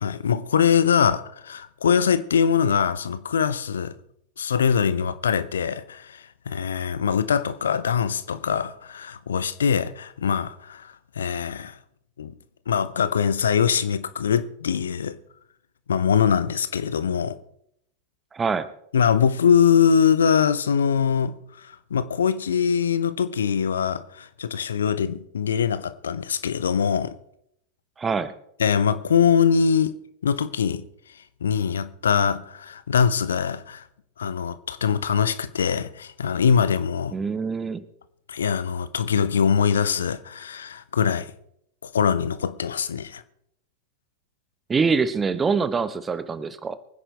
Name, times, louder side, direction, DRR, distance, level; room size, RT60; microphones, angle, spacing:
voice 1, 0.0-3.9 4.4-11.8 12.2-12.3 12.7-15.2 15.9-17.4 18.9-27.2 28.6-29.9 30.2-30.9 31.4-33.9 34.2-37.1 38.3-41.3 41.8-43.2, left 7 dB, 65° left, 0.7 m, -23 dB
voice 2, 18.3-18.7 28.0-28.3 37.1-37.8 44.7-46.8, right 5 dB, 15° right, 1.0 m, -24 dB
23.5 x 10.0 x 3.4 m
figure-of-eight pair, 90°, 0 cm